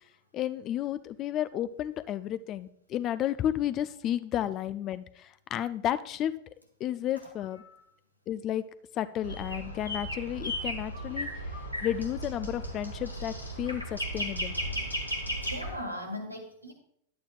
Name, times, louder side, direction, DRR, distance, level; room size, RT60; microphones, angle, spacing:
voice 1, 0.3-6.3 6.8-7.6 8.3-8.6 8.9-14.6, left 11 dB, 35° left, 14 dB, 0.4 m, -32 dB
voice 2, 7.4-7.8 15.4-16.7, equal, 90° right, 1 dB, 1.8 m, -39 dB
sound 1, 9.2-15.8, equal, 90° left, 1.4 m, -35 dB
11.5 x 8.5 x 2.4 m, 0.71 s
figure-of-eight pair, 90°, 0 cm